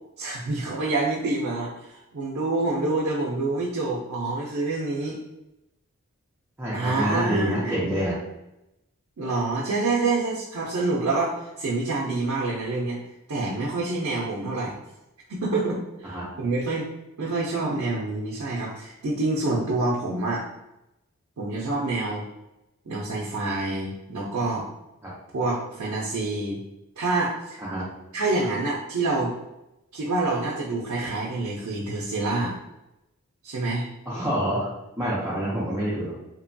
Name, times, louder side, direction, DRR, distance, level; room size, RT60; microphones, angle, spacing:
voice 1, 0.2-5.2 6.7-7.7 9.2-13.0 13.3-14.8 15.3-16.9 17.2-20.4 21.4-22.2 22.9-24.7 25.3-26.6 27.0-27.6 28.1-29.3 29.9-32.6 33.4-33.9, right 2 dB, 80° right, -5 dB, 0.5 m, -27 dB
voice 2, 6.6-8.2 16.0-16.3 25.0-25.1 27.6-27.8 34.1-34.7 35.0-36.1, equal, 10° right, -10 dB, 0.5 m, -27 dB
2.8 x 2.2 x 2.6 m, 0.92 s
head